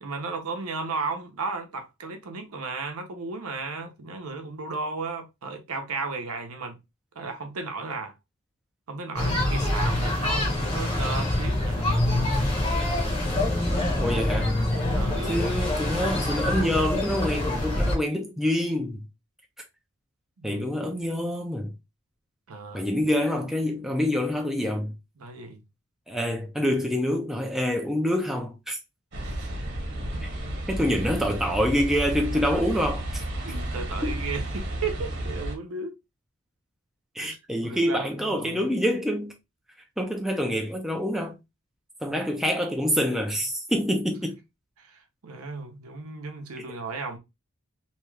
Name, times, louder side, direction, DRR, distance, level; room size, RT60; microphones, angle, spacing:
voice 1, 0.0-6.8 7.1-8.1 8.9-12.1 14.9-15.5 20.4-20.6 22.5-22.9 25.2-25.6 29.2-29.5 33.4-35.9 37.2-37.4 37.6-38.7 44.8-47.2, right 4 dB, 85° right, 0.7 m, -35 dB
sound 1, 9.2-18.0, left 1 dB, 25° left, 0.8 m, -25 dB
voice 2, 14.0-14.5 15.3-19.0 20.4-21.7 22.7-24.9 26.1-28.8 30.7-33.2 34.0-34.2 37.2-39.3 40.0-41.3 42.0-44.4, equal, ahead, 0.4 m, -26 dB
sound 2, 29.1-35.6, right 1 dB, 50° right, 1.1 m, -32 dB
2.8 x 2.3 x 3.1 m
head